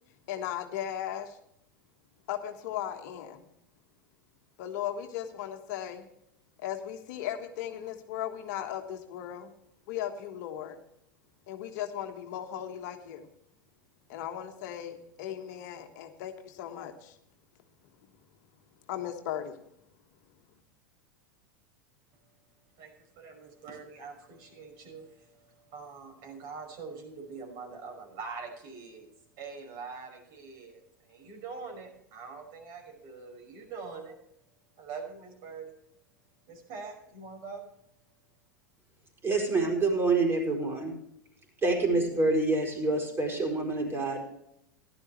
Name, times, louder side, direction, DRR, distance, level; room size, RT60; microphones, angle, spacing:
voice 1, 0.3-1.4 2.3-3.5 4.6-6.1 6.6-9.5 9.9-10.8 11.5-13.3 14.1-17.2 18.9-19.6, left 10 dB, 55° left, 6 dB, 1.4 m, -37 dB
voice 2, 22.8-29.1 29.4-34.2 34.8-35.7 36.5-37.6, right 5 dB, 50° right, 2 dB, 5.5 m, -44 dB
voice 3, 39.2-40.9 41.6-44.2, right 3 dB, 20° right, 2 dB, 4.7 m, -27 dB
15.5 x 11.5 x 3.2 m, 0.74 s
figure-of-eight pair, 85°, 11 cm